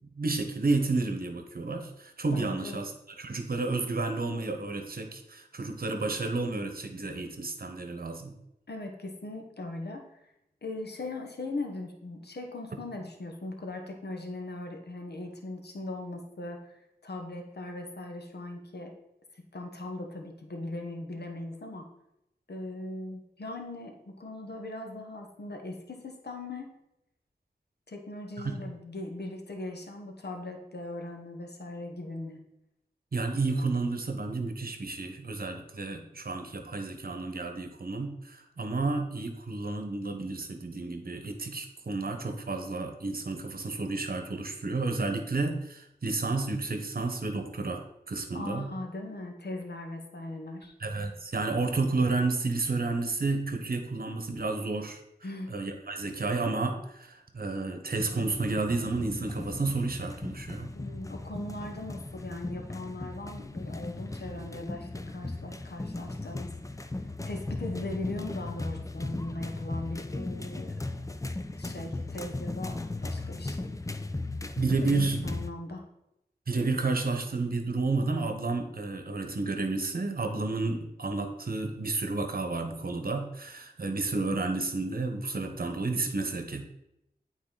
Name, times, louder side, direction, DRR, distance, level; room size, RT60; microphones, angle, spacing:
voice 1, 0.2-2.9 3.2-8.4 28.4-28.5 33.1-48.7 50.8-55.0 55.5-60.7 74.6-75.2 76.5-86.6, right 3 dB, 60° right, 5 dB, 1.0 m, -31 dB
voice 2, 2.3-2.8 8.7-10.0 10.6-18.9 19.5-21.8 22.5-26.7 27.9-32.4 48.3-50.7 55.2-55.5 60.7-66.5 67.2-70.7 71.6-73.7 74.9-75.8, left 2 dB, 70° left, 3 dB, 1.1 m, -39 dB
sound 1, 57.9-75.5, left 2 dB, 20° left, 0.5 m, -37 dB
8.7 x 4.1 x 3.9 m, 0.83 s
wide cardioid pair, 50°, 17 cm